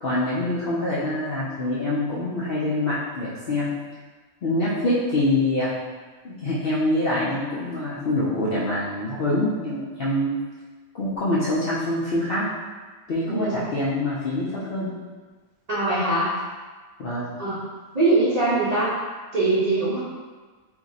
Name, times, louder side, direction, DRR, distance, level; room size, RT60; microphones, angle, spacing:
voice 1, 0.0-3.7 4.4-5.7 6.2-10.4 10.9-12.4 13.1-14.9 17.0-17.3, left 1 dB, 55° left, -8 dB, 0.6 m, -25 dB
voice 2, 13.3-13.6 15.7-16.3 17.4-17.6 17.9-18.9 19.3-20.0, right 2 dB, 35° right, -10 dB, 0.6 m, -22 dB
3.0 x 2.6 x 3.8 m, 1.4 s
omnidirectional pair, 1.5 m